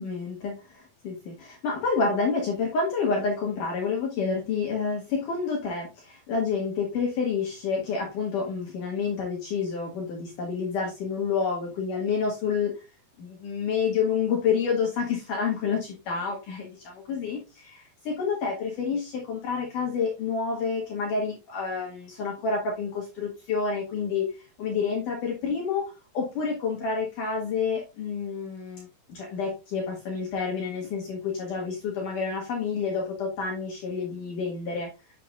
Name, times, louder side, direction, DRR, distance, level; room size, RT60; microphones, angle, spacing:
voice 1, 0.0-12.8 13.2-34.9, left 5 dB, 60° left, 0 dB, 3.0 m, -29 dB
7.6 x 7.1 x 2.4 m, 0.26 s
omnidirectional pair, 4.4 m